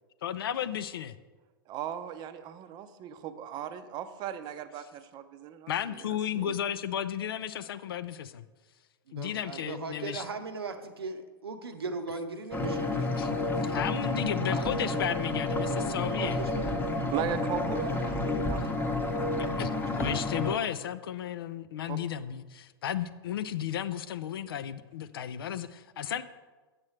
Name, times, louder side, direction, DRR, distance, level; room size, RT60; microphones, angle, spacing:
voice 1, 0.2-1.2 5.7-8.5 9.1-10.2 13.2-13.3 13.6-16.4 19.4-19.7 20.0-26.2, left 9 dB, 75° left, 14 dB, 0.4 m, -34 dB
voice 2, 1.7-5.7 6.3-6.5 17.1-19.3 21.9-22.0, right 10 dB, 35° right, 11 dB, 0.6 m, -37 dB
voice 3, 9.1-13.1 15.7-17.1 19.9-20.2, right 3 dB, 85° right, 7 dB, 0.7 m, -39 dB
sound 1, 12.5-20.5, left 2 dB, 15° left, 0.9 m, -30 dB
7.5 x 7.3 x 3.2 m, 1.3 s
hypercardioid pair, 100°, 13 cm